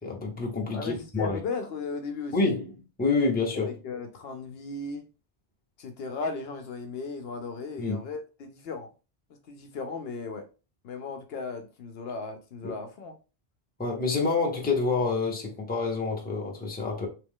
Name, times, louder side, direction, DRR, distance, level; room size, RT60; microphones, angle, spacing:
voice 1, 0.0-1.4 2.3-2.7 3.0-3.7 7.8-8.0 12.6-12.7 13.8-17.1, left 3 dB, 10° left, 0.7 m, -27 dB
voice 2, 0.7-2.5 3.5-5.0 5.8-8.9 9.5-10.4 10.8-13.2, left 4 dB, 65° left, 0.8 m, -36 dB
3.1 x 2.9 x 3.6 m
omnidirectional pair, 1.1 m